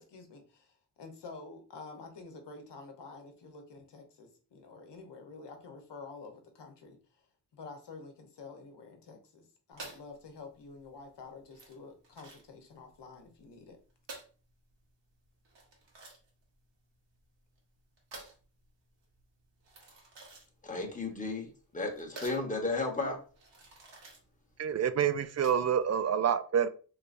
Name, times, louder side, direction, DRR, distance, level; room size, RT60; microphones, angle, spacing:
voice 1, 0.0-7.0 7.5-13.8, left 4 dB, 70° left, 4 dB, 1.0 m, -49 dB
sound 1, 9.7-25.8, right 3 dB, 80° right, 1.4 m, -52 dB
voice 2, 20.6-21.5 21.7-23.2, left 3 dB, 20° left, 1 dB, 1.1 m, -33 dB
voice 3, 24.6-26.7, right 8 dB, 40° right, 11 dB, 0.4 m, -27 dB
3.2 x 3.2 x 2.5 m, 0.37 s
cardioid pair, 55°, 43 cm